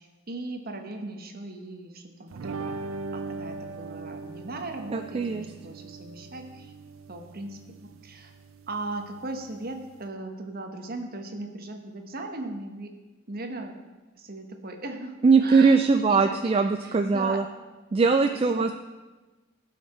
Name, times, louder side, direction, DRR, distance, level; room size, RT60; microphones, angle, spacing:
voice 1, 0.0-6.7 7.1-8.3 8.7-12.9 13.3-13.7 14.1-15.1 15.4-16.5 16.8-17.4 18.3-18.7, right 2 dB, 45° right, 4 dB, 1.1 m, -38 dB
sound 1, 2.3-10.0, right 3 dB, 80° right, 0.5 m, -40 dB
voice 2, 4.9-5.5 15.2-17.4 17.9-18.7, right 4 dB, 30° right, 7 dB, 0.3 m, -21 dB
17.0 x 5.8 x 4.3 m, 1.2 s
head